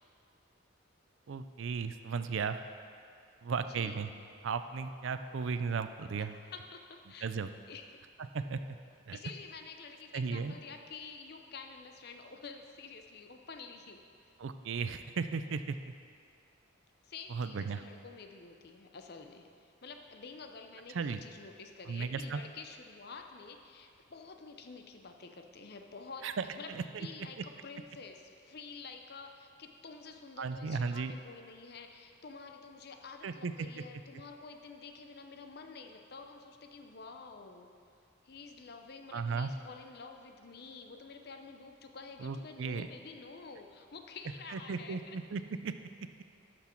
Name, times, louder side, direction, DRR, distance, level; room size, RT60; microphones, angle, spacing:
voice 1, 1.3-2.6 3.4-4.1 4.4-6.4 7.2-7.5 8.2-8.6 9.1-9.2 10.1-10.5 14.4-15.8 17.3-17.8 20.9-21.2 21.9-22.4 26.2-27.1 30.4-31.1 33.2-33.8 39.1-39.5 42.2-42.9 44.5-45.7, right 5 dB, 75° right, 10 dB, 0.4 m, -35 dB
voice 2, 3.7-4.0 6.2-7.3 7.7-8.0 9.1-14.3 17.0-26.3 26.6-37.7 38.2-45.2, left 4 dB, 55° left, 5 dB, 0.7 m, -49 dB
11.5 x 6.1 x 4.5 m, 2.4 s
head